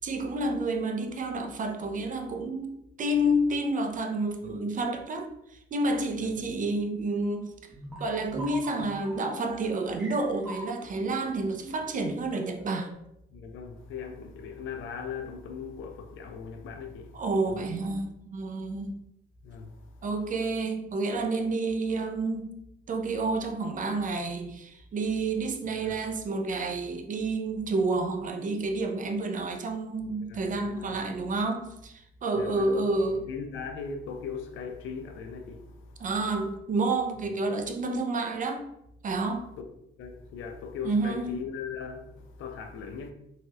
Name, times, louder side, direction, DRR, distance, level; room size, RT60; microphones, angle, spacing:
voice 1, 0.0-7.5 8.0-12.9 17.1-18.9 20.0-22.5 22.9-33.3 36.0-38.6 39.0-39.5 40.8-41.3, right 2 dB, 40° right, 0.5 m, -29 dB
voice 2, 6.2-6.6 12.2-12.3 13.3-17.2 17.5-17.6 19.4-19.7 25.8-26.0 30.0-31.0 32.3-35.9 39.6-39.7 40.0-43.1, left 6 dB, 80° left, 0.5 m, -39 dB
sound 1, 7.7-12.9, right 1 dB, 5° right, 0.8 m, -42 dB
3.1 x 2.8 x 2.2 m
cardioid pair, 90°, 20 cm